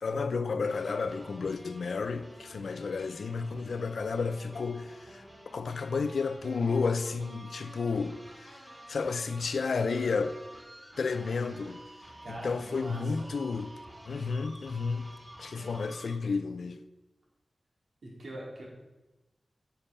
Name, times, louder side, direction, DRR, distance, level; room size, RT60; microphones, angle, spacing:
voice 1, 0.0-8.6 8.9-10.3 11.0-11.8 12.3-13.7 14.1-15.1 15.4-16.8, left 4 dB, 85° left, 0.7 m, -32 dB
sound 1, 0.6-16.2, right 1 dB, 15° right, 2.9 m, -50 dB
voice 2, 11.1-11.5 12.2-13.3 18.0-18.6, right 1 dB, 75° right, 4.3 m, -43 dB
10.0 x 7.1 x 7.1 m
wide cardioid pair, 120°, 0 cm